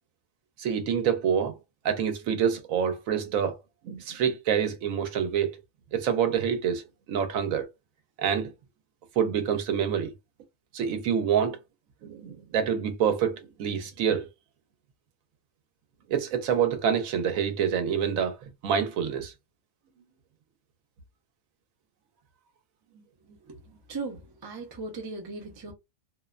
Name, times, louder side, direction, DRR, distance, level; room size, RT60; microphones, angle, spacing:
voice 1, 0.6-1.6 1.8-3.6 3.8-5.6 5.9-7.7 8.2-8.5 9.2-10.1 10.7-11.6 12.0-14.3 16.1-19.3, right 8 dB, 85° right, 1.1 m, -27 dB
voice 2, 23.9-25.7, right 3 dB, 40° right, 0.3 m, -37 dB
2.7 x 2.0 x 2.3 m
omnidirectional pair, 1.4 m